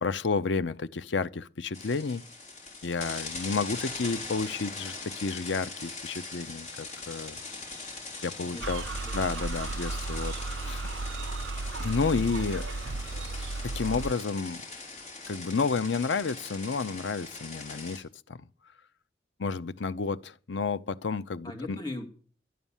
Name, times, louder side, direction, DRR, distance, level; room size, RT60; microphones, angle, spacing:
voice 1, 0.0-2.2 2.8-7.4 8.2-8.8 9.1-10.9 11.8-12.7 13.6-14.6 15.3-18.4 19.4-21.8, left 4 dB, 80° left, 0.7 m, -31 dB
sound 1, 1.7-18.0, left 3 dB, 40° left, 3.6 m, -41 dB
voice 2, 8.4-9.2 21.4-22.2, left 2 dB, 20° left, 2.2 m, -40 dB
sound 2, 8.6-14.1, right 3 dB, 85° right, 0.6 m, -34 dB
11.0 x 9.2 x 7.2 m
head